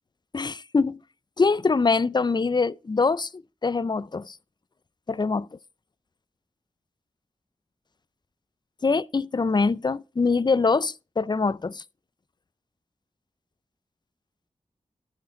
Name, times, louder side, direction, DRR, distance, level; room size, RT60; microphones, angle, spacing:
voice 1, 0.3-1.0 1.4-3.3 3.6-4.4 5.1-5.5 8.8-11.8, left 4 dB, 35° left, 0.4 m, -23 dB
12.0 x 6.5 x 3.8 m
cardioid pair, 50°, 13 cm